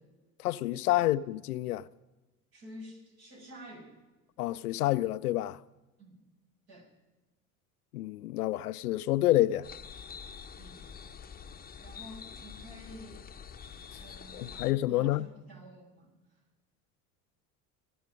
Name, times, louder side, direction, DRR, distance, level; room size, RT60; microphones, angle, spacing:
voice 1, 0.4-1.9 4.4-5.6 7.9-9.7 14.3-15.3, left 15 dB, 90° left, 0.5 m, -28 dB
voice 2, 2.5-3.9 6.0-6.2 6.7-6.9 10.6-10.9 11.7-13.3 14.0-16.1, equal, 55° right, 7.6 m, -50 dB
sound 1, 9.6-14.7, left 7 dB, 20° left, 0.9 m, -46 dB
25.0 x 9.5 x 5.3 m
hypercardioid pair, 75°, 44 cm